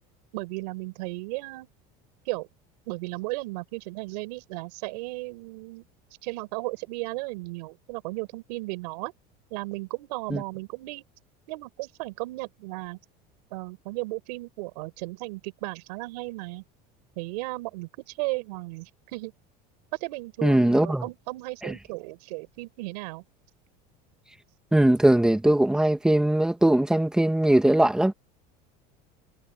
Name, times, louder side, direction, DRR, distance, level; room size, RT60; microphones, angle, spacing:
voice 1, 0.3-1.7 2.2-2.5 2.9-5.8 6.2-9.1 9.5-11.0 11.5-13.0 13.5-16.6 17.1-19.3 20.0-23.2, right 24 dB, 90° right, 6.8 m, -35 dB
voice 2, 20.4-21.0 21.6-21.7 24.7-28.1, right 1 dB, 5° right, 2.1 m, -20 dB
cardioid pair, 155°, 20 cm